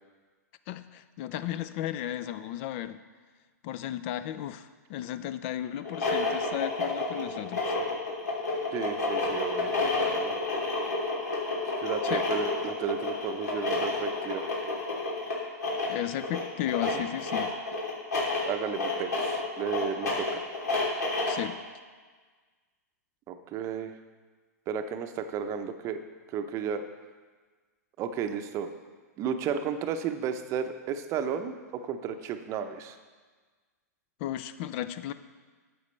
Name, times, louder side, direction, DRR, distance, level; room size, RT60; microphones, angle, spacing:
voice 1, 0.7-3.0 3.6-7.7 12.0-12.3 15.9-17.5 21.3-21.6 34.2-35.1, left 12 dB, 45° left, 13 dB, 0.4 m, -34 dB
sound 1, 5.8-21.5, left 3 dB, 85° left, 3.0 m, -30 dB
voice 2, 8.7-10.4 11.8-14.5 16.9-17.0 18.5-20.5 23.3-23.9 24.7-26.0 26.3-26.8 28.0-28.7 29.2-31.5 31.8-33.0, right 7 dB, 35° right, 8 dB, 0.7 m, -33 dB
11.5 x 7.7 x 3.2 m, 1.4 s
hypercardioid pair, 115°, 9 cm